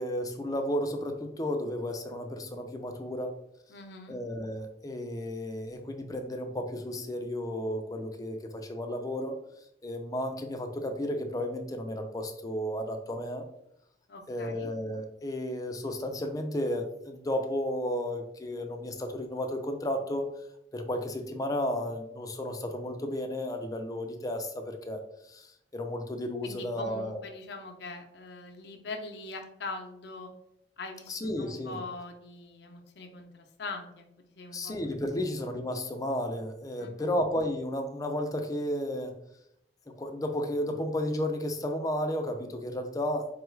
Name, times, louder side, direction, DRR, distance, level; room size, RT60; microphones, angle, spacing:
voice 1, 0.0-3.3 4.1-9.4 9.8-13.4 14.3-20.3 20.7-27.2 31.1-31.8 34.5-39.1 39.9-43.3, left 1 dB, 20° left, 4 dB, 0.4 m, -33 dB
voice 2, 3.7-4.2 14.1-14.7 26.4-30.3 30.8-34.0 34.3-34.8 35.1-35.3 36.8-37.2, left 3 dB, 70° left, 4 dB, 0.5 m, -42 dB
4.5 x 2.3 x 3.1 m, 0.77 s
head